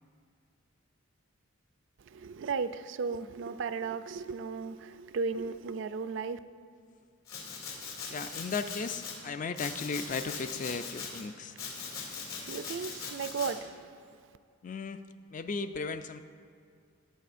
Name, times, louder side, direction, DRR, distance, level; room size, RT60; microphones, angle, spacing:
voice 1, 2.0-6.4 12.0-12.1 12.4-14.0, right 5 dB, 55° right, 0.3 m, -35 dB
Domestic sounds home sounds, 7.3-9.1 9.5-11.2 11.6-13.5, left 5 dB, 75° left, 2.7 m, -40 dB
voice 2, 8.1-11.5 14.6-15.0 15.3-16.2, left 4 dB, 35° left, 0.3 m, -36 dB
17.5 x 9.1 x 2.6 m
head